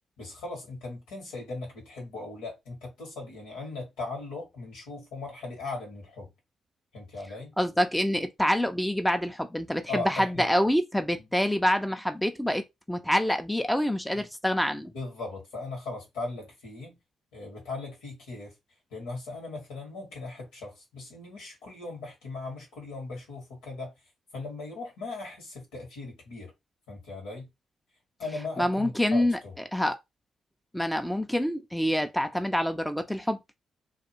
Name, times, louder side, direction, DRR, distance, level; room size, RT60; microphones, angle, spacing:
voice 1, 0.2-6.3 6.9-7.5 9.9-10.5 11.2-11.3 14.1-14.3 14.9-17.0 17.3-18.5 18.9-23.9 24.3-26.5 26.9-27.5 28.2-29.6, left 3 dB, 80° left, 1.4 m, -38 dB
voice 2, 7.6-14.9 28.6-29.4 29.7-29.9 30.7-33.4, equal, 5° left, 0.6 m, -26 dB
2.6 x 2.3 x 2.8 m
hypercardioid pair, 40°, 0 cm